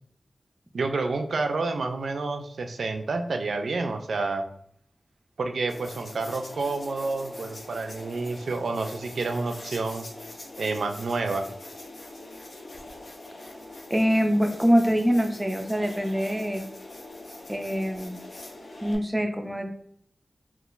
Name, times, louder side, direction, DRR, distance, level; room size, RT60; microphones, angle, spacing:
voice 1, 0.7-4.4 5.4-10.1 10.6-11.5, right 3 dB, 90° right, 6 dB, 0.4 m, -29 dB
sound 1, 5.7-19.0, left 2 dB, 50° left, 0.6 m, -43 dB
voice 2, 13.9-16.6 17.5-18.1 18.8-19.7, equal, 10° right, 4 dB, 0.5 m, -24 dB
3.7 x 2.4 x 2.5 m, 0.65 s
wide cardioid pair, 95°, 0 cm